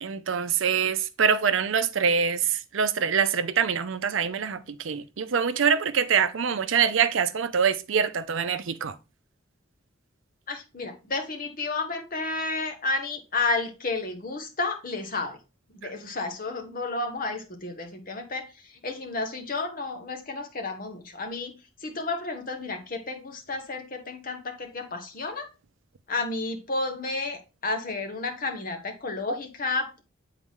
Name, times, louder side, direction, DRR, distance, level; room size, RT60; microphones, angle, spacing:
voice 1, 0.0-9.0 29.3-29.4, right 6 dB, 70° right, 0.5 m, -25 dB
voice 2, 10.5-15.4 15.7-25.5 26.1-30.0, left 3 dB, 45° left, 1.1 m, -31 dB
7.7 x 4.0 x 3.6 m
head